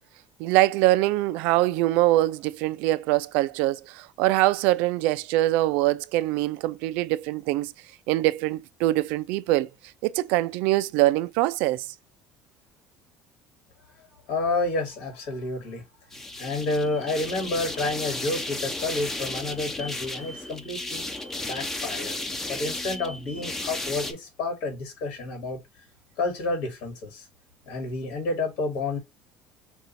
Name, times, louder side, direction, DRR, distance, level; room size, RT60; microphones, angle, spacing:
voice 1, 0.4-7.7 8.1-9.7 10.0-11.9, right 16 dB, 75° right, 0.4 m, -23 dB
voice 2, 14.3-15.8 16.4-21.0 21.4-22.2 22.5-25.6 26.2-27.3 27.7-29.0, left 2 dB, 65° left, 1.9 m, -30 dB
sound 1, 16.1-24.1, left 2 dB, 15° left, 0.7 m, -34 dB
5.2 x 2.4 x 4.1 m
cardioid pair, 140°, 3 cm